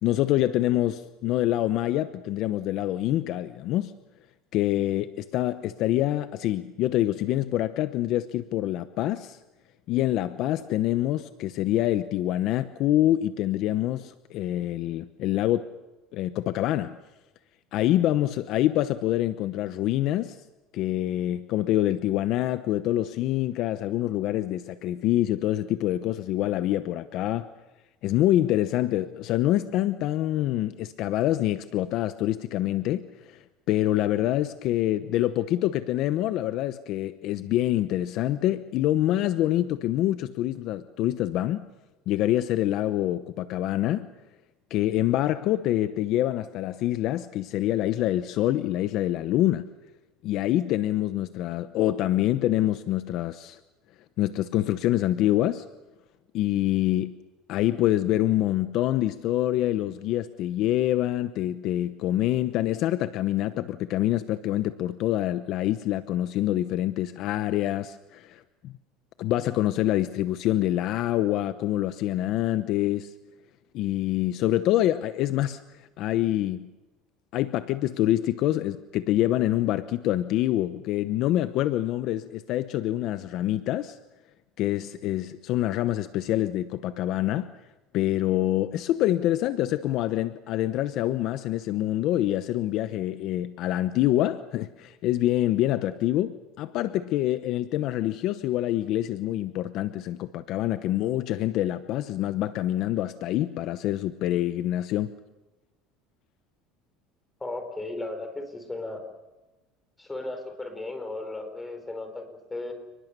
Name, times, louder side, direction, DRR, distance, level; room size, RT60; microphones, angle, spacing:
voice 1, 0.0-3.9 4.5-9.4 9.9-15.7 16.1-17.0 17.7-20.4 20.7-27.5 28.0-33.4 33.7-41.6 42.1-44.1 44.7-49.7 50.2-53.6 54.2-55.6 56.3-57.1 57.5-68.7 69.2-73.1 73.7-75.6 76.0-76.7 77.3-84.0 84.6-87.5 87.9-105.1, left 13 dB, 50° left, 12 dB, 0.9 m, -26 dB
voice 2, 107.4-109.0 110.0-112.7, left 2 dB, 10° left, 6 dB, 4.5 m, -35 dB
30.0 x 20.5 x 6.8 m, 1.1 s
cardioid pair, 145°, 0 cm